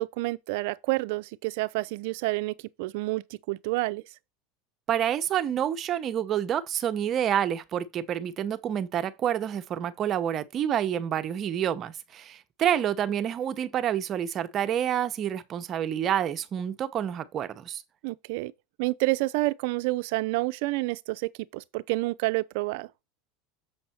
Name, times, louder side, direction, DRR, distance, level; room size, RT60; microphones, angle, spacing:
voice 1, 0.0-4.0 18.0-18.5 18.8-22.9, right 21 dB, 70° right, 0.5 m, -29 dB
voice 2, 4.9-17.8, right 10 dB, 40° right, 0.8 m, -28 dB
7.1 x 5.4 x 4.3 m
supercardioid pair, 105°, 0 cm